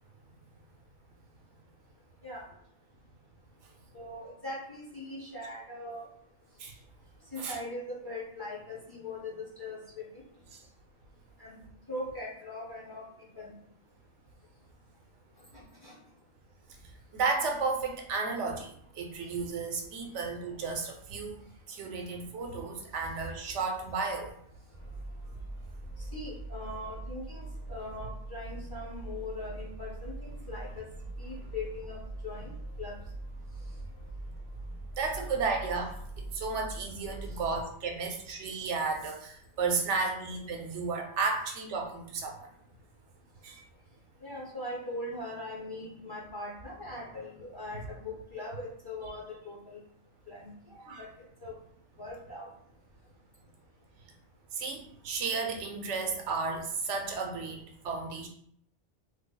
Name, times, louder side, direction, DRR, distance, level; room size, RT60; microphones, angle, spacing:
voice 1, 3.9-6.1 7.3-10.1 11.4-11.6 11.9-13.0 13.3-13.5 15.5-16.0 26.1-30.9 31.2-32.9 37.3-37.4 44.2-49.8 50.3-51.1 51.4-51.5 52.0-52.5, left 2 dB, 20° left, -5 dB, 0.8 m, -41 dB
voice 2, 17.1-21.4 21.7-24.4 35.0-42.5 43.4-43.6 50.8-51.0 54.5-58.3, right 4 dB, 80° right, 3 dB, 0.9 m, -33 dB
sound 1, 24.7-37.6, right 2 dB, 55° left, 1.5 m, -42 dB
3.2 x 2.0 x 3.8 m, 0.66 s
omnidirectional pair, 1.2 m